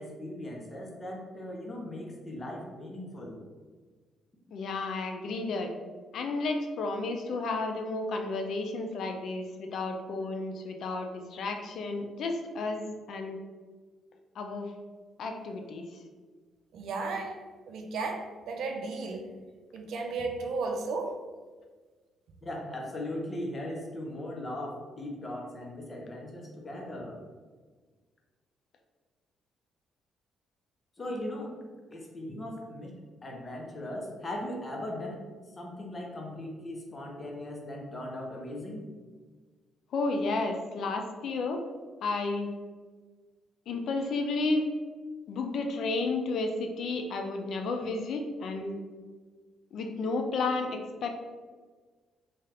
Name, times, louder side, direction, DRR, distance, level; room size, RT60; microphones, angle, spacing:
voice 1, 0.0-3.4 22.4-27.2 31.0-31.5 31.9-32.9 33.2-35.2 35.6-38.8, left 1 dB, 30° left, 0 dB, 0.7 m, -38 dB
voice 2, 4.5-5.7 6.1-13.4 14.4-14.7 15.2-16.0 39.9-41.6 42.0-42.5 43.7-44.7 45.3-48.8 49.7-51.1, left 3 dB, 65° left, 4 dB, 0.4 m, -32 dB
voice 3, 16.7-19.3 19.7-21.2, right 3 dB, 75° right, 3 dB, 0.4 m, -34 dB
2.8 x 2.3 x 3.3 m, 1.4 s
cardioid pair, 90°, 0 cm